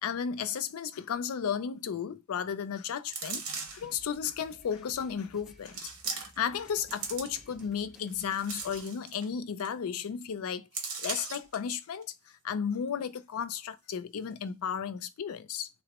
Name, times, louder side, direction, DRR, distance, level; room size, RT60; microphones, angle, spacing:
voice 1, 0.0-3.4 3.7-5.8 6.1-12.0 12.4-15.7, left 7 dB, 75° left, 0.4 m, -34 dB
sound 1, 3.1-3.9 4.7-4.8 5.7-6.5 6.8-7.6 8.1-9.3 9.6-9.7 10.0-10.2 10.7-11.6 12.0-12.1, right 4 dB, 90° right, 0.8 m, -38 dB
sound 2, 3.7-8.8, equal, 5° right, 0.4 m, -57 dB
3.5 x 2.0 x 2.8 m
head